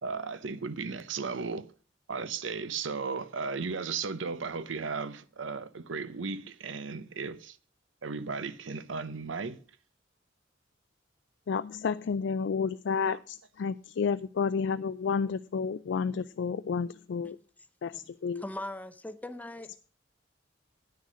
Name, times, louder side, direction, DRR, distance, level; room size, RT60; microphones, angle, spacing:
voice 1, 0.0-1.7 2.1-7.6 8.0-9.6 13.1-13.2, right 4 dB, 80° right, 0.7 m, -35 dB
voice 2, 11.5-17.4 17.8-18.4, left 5 dB, 65° left, 0.4 m, -31 dB
voice 3, 18.4-19.7, left 1 dB, 10° left, 0.6 m, -40 dB
9.4 x 6.5 x 6.2 m
head